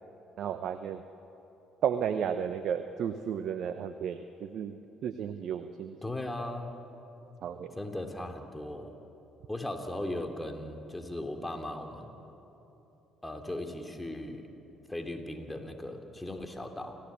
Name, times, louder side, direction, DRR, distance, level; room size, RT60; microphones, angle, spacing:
voice 1, 0.4-1.0 1.8-6.0 7.4-7.7, right 8 dB, 65° right, 10 dB, 0.8 m, -33 dB
voice 2, 6.0-6.8 7.8-8.9 9.5-12.1 13.2-14.4 14.9-17.0, left 1 dB, 15° left, 5 dB, 2.8 m, -37 dB
28.5 x 16.0 x 8.6 m, 3.0 s
hypercardioid pair, 55°, 0 cm